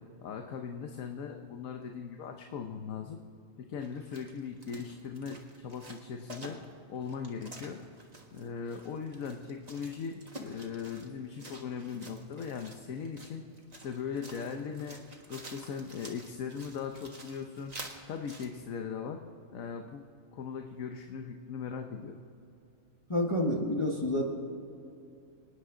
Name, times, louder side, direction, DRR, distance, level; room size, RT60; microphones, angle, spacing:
voice 1, 0.2-3.2 3.6-6.6 6.9-7.8 8.3-13.4 13.8-15.0 15.3-17.7 18.1-19.2 19.5-20.0 20.3-22.2, left 6 dB, 80° left, 4 dB, 1.2 m, -39 dB
sound 1, 3.8-18.5, right 2 dB, 30° right, 1.5 m, -50 dB
voice 2, 23.1-24.2, left 1 dB, 20° left, -1 dB, 1.3 m, -28 dB
26.5 x 9.9 x 3.8 m, 2.7 s
omnidirectional pair, 1.4 m